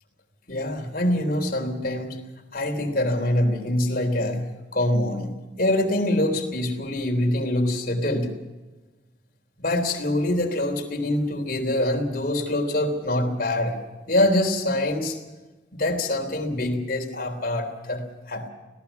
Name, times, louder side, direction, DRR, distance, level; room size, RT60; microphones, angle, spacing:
voice 1, 0.5-2.2 2.5-5.3 5.6-8.3 9.6-13.8 14.1-15.2 15.7-18.5, left 1 dB, 50° left, 3 dB, 3.5 m, -24 dB
25.0 x 17.5 x 7.2 m, 1.2 s
head